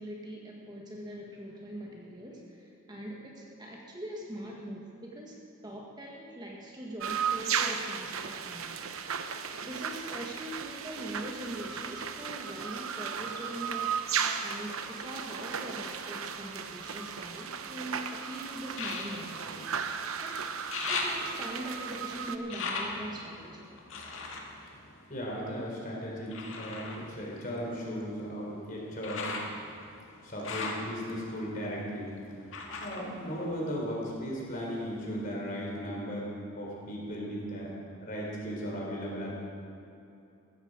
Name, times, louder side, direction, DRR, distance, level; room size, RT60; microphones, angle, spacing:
voice 1, 0.0-9.0 9.6-14.0 14.4-19.7 20.2-20.4 20.9-23.7, right 1 dB, 20° right, -1 dB, 1.4 m, -42 dB
sound 1, 7.0-22.4, right 7 dB, 80° right, 0.8 m, -35 dB
sound 2, 16.5-17.9 18.7-20.2 20.5-25.7 26.3-34.1 34.5-35.3 35.8-35.9, left 3 dB, 65° left, 1.9 m, -39 dB
voice 2, 25.1-29.3 30.2-32.1 32.8-36.3 36.5-37.7 38.0-39.3, equal, 40° left, -3 dB, 3.7 m, -36 dB
15.5 x 14.5 x 4.9 m, 2.7 s
head